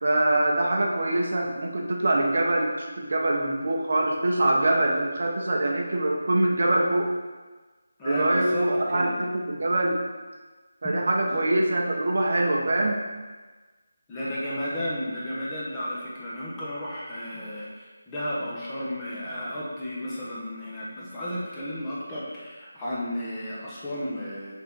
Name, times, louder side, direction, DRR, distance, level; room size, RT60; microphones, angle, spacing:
voice 1, 0.0-7.1 8.0-10.0 10.8-13.0, right 1 dB, 50° right, 1 dB, 0.9 m, -24 dB
voice 2, 8.0-9.2 10.8-10.9 11.2-11.4 14.1-24.5, equal, 10° left, -8 dB, 0.9 m, -33 dB
6.3 x 3.9 x 4.5 m, 1.3 s
figure-of-eight pair, 175°, 0 cm